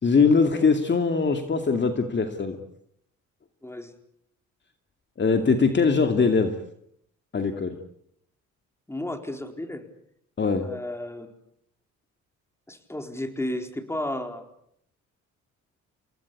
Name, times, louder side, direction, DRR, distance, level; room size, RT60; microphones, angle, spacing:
voice 1, 0.0-2.6 5.2-6.6 7.3-7.8 10.4-10.7, left 4 dB, 35° left, 6 dB, 2.5 m, -21 dB
voice 2, 3.6-3.9 8.9-9.9 10.6-11.3 12.7-14.4, left 1 dB, 10° left, 6 dB, 4.4 m, -33 dB
30.0 x 18.5 x 8.6 m, 0.72 s
cardioid pair, 90°, 30 cm